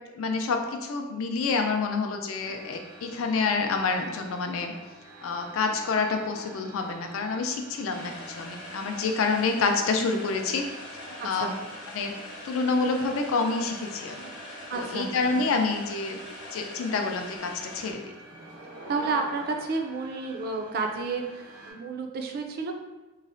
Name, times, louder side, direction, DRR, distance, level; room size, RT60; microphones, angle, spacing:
voice 1, 0.1-4.7 5.2-10.6 11.2-11.5 11.9-12.1 12.4-14.2 14.7-16.2 16.5-18.1, left 4 dB, 75° left, 5 dB, 0.4 m, -28 dB
sound 1, 2.4-21.7, right 1 dB, 75° right, 0.9 m, -47 dB
sound 2, 7.9-17.9, left 1 dB, 60° left, 0.8 m, -43 dB
voice 2, 11.2-11.5 14.7-15.1 18.9-22.7, right 4 dB, 45° right, 4 dB, 0.3 m, -31 dB
3.8 x 2.0 x 2.5 m, 1.1 s
head